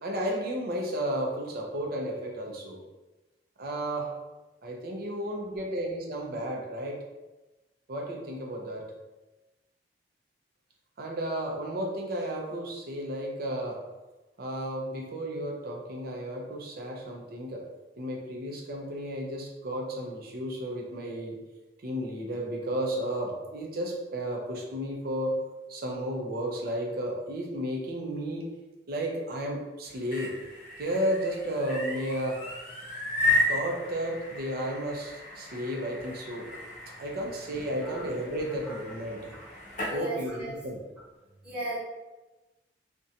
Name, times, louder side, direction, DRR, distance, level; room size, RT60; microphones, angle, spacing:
voice 1, 0.0-2.8 3.6-4.1 4.6-7.0 7.9-8.8 11.0-13.8 14.4-17.6 18.0-21.4 21.8-25.3 25.7-28.5 28.9-30.3 30.8-32.4 33.5-36.5 37.0-39.3 39.9-40.8, right 1 dB, 60° right, 0 dB, 0.5 m, -33 dB
sound 1, 29.9-40.0, left 1 dB, 50° left, 0.6 m, -34 dB
voice 2, 39.8-40.5 41.4-41.8, right 1 dB, 10° right, -10 dB, 1.1 m, -36 dB
2.5 x 2.2 x 2.7 m, 1.1 s
head